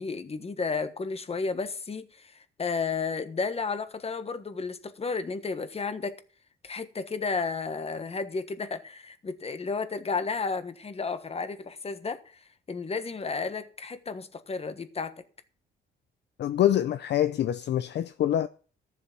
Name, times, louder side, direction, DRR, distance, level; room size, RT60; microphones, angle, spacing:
voice 1, 0.0-6.2 6.6-12.2 12.7-15.1, left 4 dB, 30° left, 1.3 m, -32 dB
voice 2, 16.4-18.5, left 11 dB, 60° left, 0.5 m, -25 dB
13.0 x 7.3 x 6.0 m
cardioid pair, 90°, 20 cm